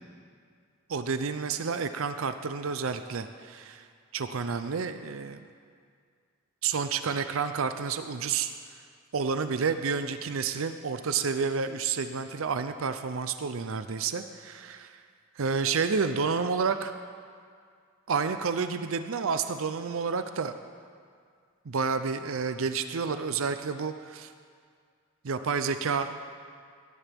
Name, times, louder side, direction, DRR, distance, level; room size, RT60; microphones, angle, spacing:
voice 1, 0.9-3.8 4.1-5.4 6.6-8.5 9.1-14.9 15.4-16.9 18.1-20.5 21.7-24.3 25.2-26.2, right 5 dB, 70° right, 9 dB, 0.5 m, -30 dB
17.5 x 13.0 x 3.5 m, 2.1 s
head